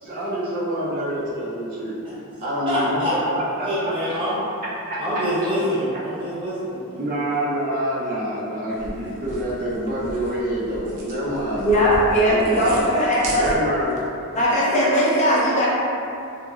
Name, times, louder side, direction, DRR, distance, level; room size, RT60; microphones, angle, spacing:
voice 1, 0.0-2.0 2.4-3.9 5.1-5.2 7.0-11.6 12.3-12.7 13.3-14.0, right 1 dB, 40° right, -7 dB, 0.4 m, -26 dB
voice 2, 2.7-3.2 3.6-4.4 5.0-7.1, equal, 25° right, -9 dB, 0.8 m, -25 dB
sound 1, 8.7-13.9, right 1 dB, 85° right, 0.7 m, -36 dB
voice 3, 11.6-13.5 14.3-15.7, equal, 35° left, -7 dB, 0.5 m, -19 dB
2.8 x 2.8 x 2.3 m, 2.6 s
head